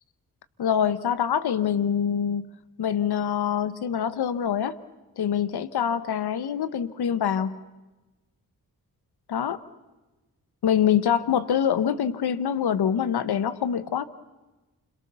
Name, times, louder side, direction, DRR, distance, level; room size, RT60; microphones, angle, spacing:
voice 1, 0.6-2.5 2.8-4.8 5.2-7.6 9.3-9.6 10.6-14.0, left 8 dB, 80° left, 15 dB, 1.2 m, -25 dB
29.0 x 22.5 x 6.9 m, 1.1 s
cardioid pair, 50°, 38 cm